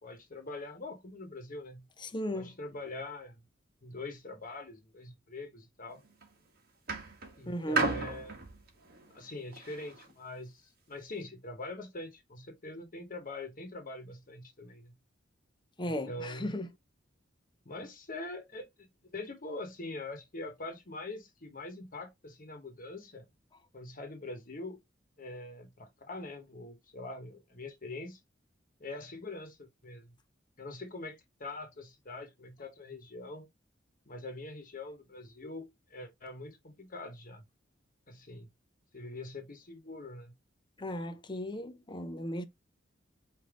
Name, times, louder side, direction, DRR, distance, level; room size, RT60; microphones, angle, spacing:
voice 1, 0.0-1.8 2.3-3.4 3.8-6.0 7.4-8.4 9.1-14.9 15.8-16.5 17.6-23.2 23.7-24.8 25.2-28.2 28.8-30.1 30.6-33.5 34.1-37.4 38.1-38.5 38.9-40.3, left 2 dB, 45° left, 1.2 m, -43 dB
voice 2, 2.0-2.5 7.5-7.9 15.8-16.7 40.8-42.4, equal, 25° left, 0.6 m, -36 dB
sound 1, 5.9-6.3 6.9-10.1 10.9-11.0, right 3 dB, 55° right, 1.3 m, -35 dB
5.1 x 2.7 x 3.6 m
head